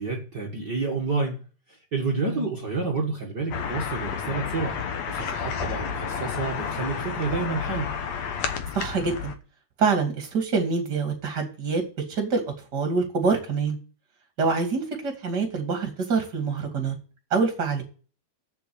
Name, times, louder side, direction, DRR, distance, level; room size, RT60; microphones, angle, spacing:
voice 1, 0.0-1.4 1.7-4.8 5.1-7.9, right 3 dB, 45° right, -1 dB, 1.3 m, -29 dB
voice 2, 2.2-2.5 8.7-9.3 9.8-11.8 12.1-12.4 12.7-13.8 14.4-17.0 17.3-17.8, right 4 dB, 30° right, 3 dB, 2.5 m, -25 dB
sound 1, 3.5-9.4, left 6 dB, 70° left, 1.6 m, -31 dB
7.8 x 7.0 x 8.0 m, 0.37 s
omnidirectional pair, 4.5 m